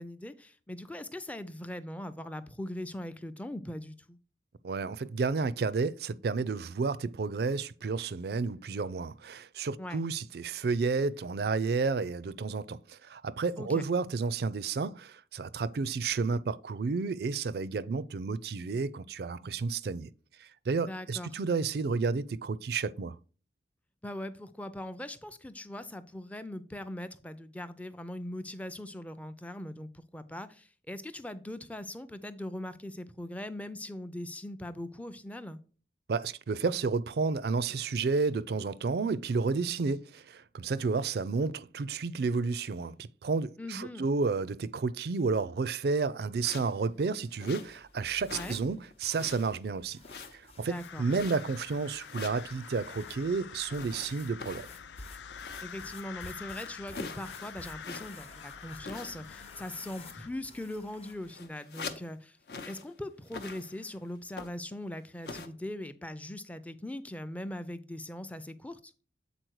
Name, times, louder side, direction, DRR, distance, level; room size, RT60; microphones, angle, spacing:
voice 1, 0.0-4.2 9.8-10.0 13.6-13.8 20.9-21.3 24.0-35.6 43.6-44.1 48.3-48.6 50.7-51.0 55.6-62.4 62.7-68.9, left 1 dB, 10° left, 0.4 m, -40 dB
voice 2, 4.6-20.1 20.4-23.2 36.1-50.0 50.3-54.7, right 4 dB, 60° right, 0.4 m, -31 dB
sound 1, 46.4-46.8 47.4-48.0 48.2-48.6 48.9-49.6 50.0-50.6 51.1-51.6 52.0-52.5 53.7-55.8 56.2-56.3 56.6-58.3 58.8-59.4 59.6-59.9 60.6-60.7 60.9-62.1 62.5-62.9 63.2-63.9 64.3-64.7 65.2-65.5, left 4 dB, 60° left, 0.8 m, -44 dB
sound 2, 47.6-61.3, left 3 dB, 35° left, 0.9 m, -53 dB
sound 3, 50.6-60.3, left 7 dB, 80° left, 0.4 m, -47 dB
7.8 x 4.2 x 4.6 m
head